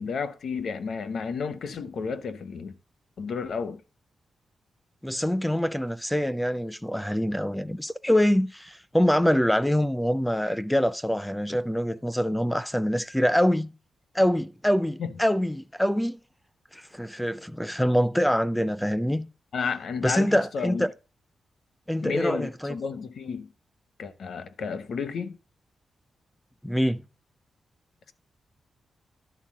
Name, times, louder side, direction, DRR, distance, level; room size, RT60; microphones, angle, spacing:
voice 1, 0.0-2.7 3.2-3.8 15.0-15.1 19.5-20.9 22.0-23.5 24.0-25.4, left 5 dB, 60° left, 0.8 m, -32 dB
voice 2, 5.0-13.7 14.1-16.2 16.7-19.3 20.0-20.9 21.9-22.8 26.6-27.0, equal, 5° left, 0.4 m, -25 dB
11.0 x 4.0 x 7.4 m
wide cardioid pair, 165°, 0 cm